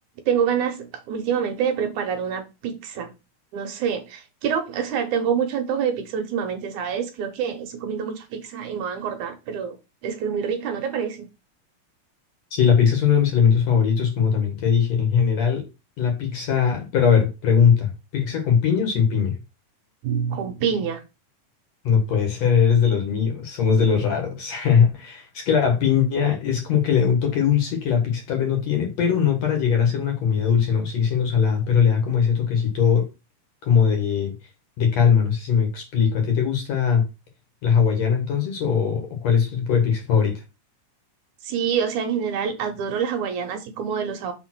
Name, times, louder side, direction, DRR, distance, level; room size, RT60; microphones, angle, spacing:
voice 1, 0.3-3.1 3.5-9.8 10.0-11.3 20.0-21.0 41.4-44.3, right 7 dB, 70° right, 2.4 m, -26 dB
voice 2, 12.5-15.6 16.0-19.4 21.8-33.1 33.6-34.3 34.8-37.1 37.6-40.4, left 7 dB, 55° left, 2.7 m, -20 dB
6.2 x 3.7 x 6.1 m
omnidirectional pair, 3.8 m